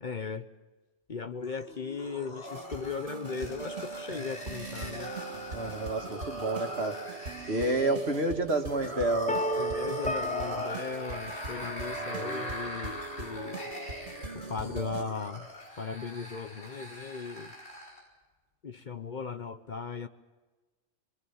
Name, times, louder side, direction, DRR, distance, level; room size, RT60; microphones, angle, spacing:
voice 1, 0.0-0.5 1.1-5.1 9.6-13.6 14.5-15.5 15.8-17.5 18.6-20.1, left 5 dB, 45° left, 10 dB, 1.0 m, -37 dB
sound 1, 1.4-18.1, left 1 dB, 65° left, 5.2 m, -42 dB
sound 2, 2.4-15.0, right 4 dB, 85° right, 2.2 m, -41 dB
voice 2, 5.5-7.0 7.5-9.4 11.9-12.5, right 2 dB, 65° right, 5 dB, 2.1 m, -30 dB
sound 3, 9.3-12.2, left 1 dB, 10° left, 0.4 m, -34 dB
25.5 x 23.0 x 7.1 m, 1.2 s
omnidirectional pair, 1.2 m